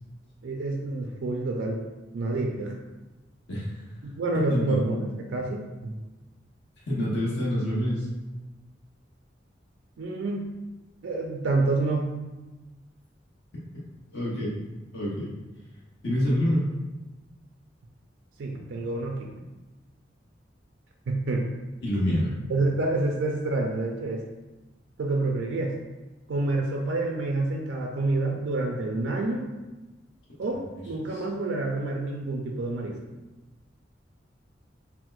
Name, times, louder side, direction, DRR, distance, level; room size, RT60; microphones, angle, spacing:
voice 1, 0.4-1.8 2.1-2.8 4.0-6.0 10.0-10.4 11.0-12.1 18.4-19.3 21.1-21.5 22.1-22.2 22.5-24.2 25.0-25.7 26.3-29.5 30.4-33.0, right 2 dB, 85° right, 1 dB, 0.4 m, -28 dB
voice 2, 6.9-8.1 14.1-14.5 14.9-15.3 16.0-16.7 21.8-22.3 31.1-31.2, equal, 70° left, -7 dB, 0.8 m, -26 dB
4.2 x 2.0 x 2.4 m, 1.1 s
head